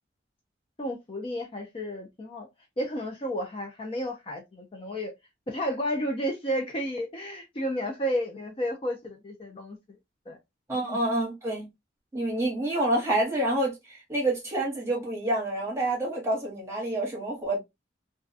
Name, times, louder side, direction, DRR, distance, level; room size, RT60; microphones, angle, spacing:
voice 1, 0.8-2.5 2.8-5.1 5.5-9.8 10.3-10.4 10.8-11.0, equal, 30° left, 0.4 m, -32 dB
voice 2, 10.7-11.7 12.1-17.6, right 1 dB, 15° right, 0.9 m, -28 dB
2.4 x 2.1 x 2.5 m
head